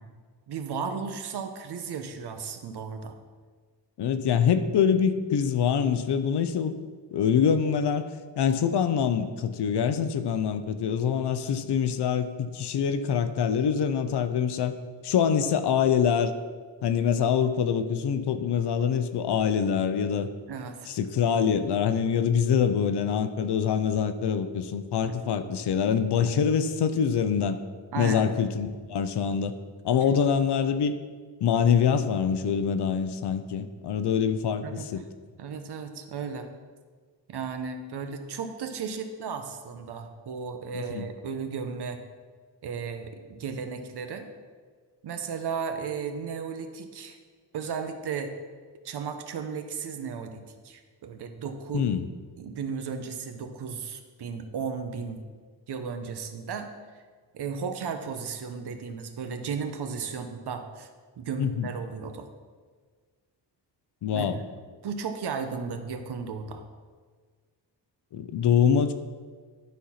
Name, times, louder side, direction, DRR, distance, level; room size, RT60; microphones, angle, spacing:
voice 1, 0.5-3.1 20.5-20.9 25.0-25.2 27.9-28.3 34.6-34.9 35.4-36.5 37.3-42.0 42.6-44.3 45.0-47.2 47.5-48.3 48.8-51.8 52.4-55.2 55.7-56.7 57.3-60.9 61.2-62.3 64.1-64.3 64.8-66.6, right 6 dB, 65° right, 7 dB, 1.0 m, -35 dB
voice 2, 4.0-6.7 7.1-8.1 8.4-14.7 15.0-16.3 16.8-20.3 20.8-27.6 28.0-29.5 29.8-31.0 31.4-35.0 40.7-41.1 51.7-52.1 61.4-61.7 64.0-64.4 68.1-68.9, left 7 dB, 70° left, 10 dB, 0.7 m, -25 dB
11.5 x 4.3 x 5.7 m, 1.5 s
wide cardioid pair, 145°, 42 cm